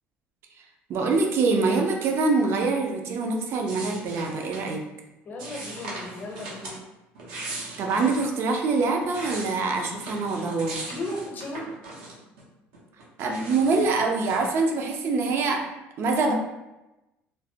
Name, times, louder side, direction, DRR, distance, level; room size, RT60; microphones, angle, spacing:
voice 1, 0.9-4.8 7.8-10.9 13.2-15.6 16.0-16.3, right 3 dB, 55° right, 3 dB, 0.5 m, -24 dB
sound 1, 3.7-4.8 5.4-6.8 7.1-8.3 8.8-12.4 12.7-14.5, right 2 dB, 85° right, 0.8 m, -39 dB
voice 2, 5.2-6.7 10.9-11.7, left 2 dB, 40° left, 1 dB, 0.7 m, -35 dB
3.2 x 2.1 x 2.7 m, 0.99 s
supercardioid pair, 90°, 5 cm